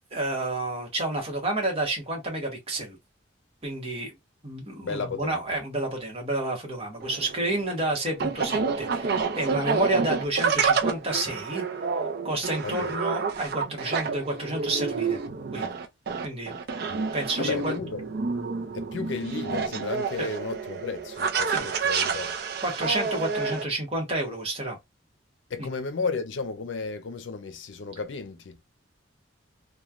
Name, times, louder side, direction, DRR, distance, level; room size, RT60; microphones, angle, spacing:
voice 1, 0.1-3.0 3.6-4.1 4.4-11.6 12.2-15.2 15.5-15.7 16.2-16.6 17.1-17.7 20.2-20.3 21.5-21.6 22.6-24.8 25.6-25.7, right 2 dB, 30° right, 1.1 m, -30 dB
voice 2, 4.8-5.4 12.6-13.0 17.4-18.0 18.7-22.3 25.5-28.6, left 4 dB, 75° left, 0.5 m, -33 dB
sound 1, 7.0-23.6, right 5 dB, 55° right, 0.5 m, -29 dB
3.0 x 2.2 x 2.4 m
head